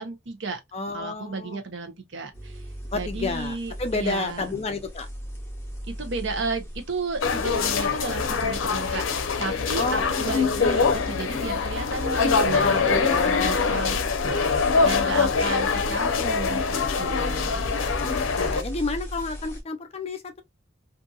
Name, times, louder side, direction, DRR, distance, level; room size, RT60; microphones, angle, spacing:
voice 1, 0.0-0.6 0.9-2.7 2.9-4.5 5.9-14.0 14.2-17.6, right 3 dB, 70° right, 0.8 m, -33 dB
voice 2, 0.7-1.6 2.9-5.1 9.7-10.4 13.0-13.6 14.7-15.5 18.0-20.4, left 3 dB, 30° left, 0.4 m, -31 dB
sound 1, 2.3-19.6, equal, 15° left, 0.8 m, -38 dB
sound 2, 7.2-18.6, left 5 dB, 85° left, 0.5 m, -24 dB
2.7 x 2.6 x 2.3 m
head